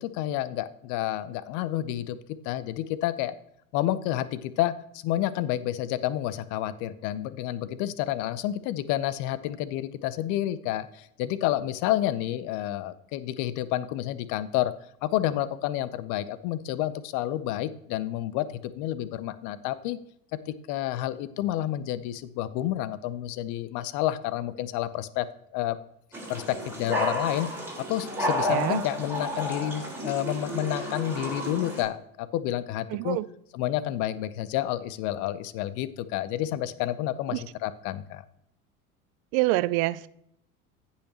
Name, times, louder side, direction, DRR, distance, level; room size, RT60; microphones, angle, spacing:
voice 1, 0.0-2.2 2.4-3.3 3.7-14.7 15.0-20.0 20.3-25.3 25.5-25.8 26.3-27.5 27.9-33.2 33.5-38.2, left 13 dB, 45° left, 0.7 m, -29 dB
sound 1, 26.1-31.8, equal, 5° right, 4.2 m, -32 dB
voice 2, 32.9-33.2 37.3-37.4 39.3-40.1, right 19 dB, 45° right, 0.5 m, -26 dB
16.0 x 5.7 x 2.9 m
figure-of-eight pair, 75°, 43 cm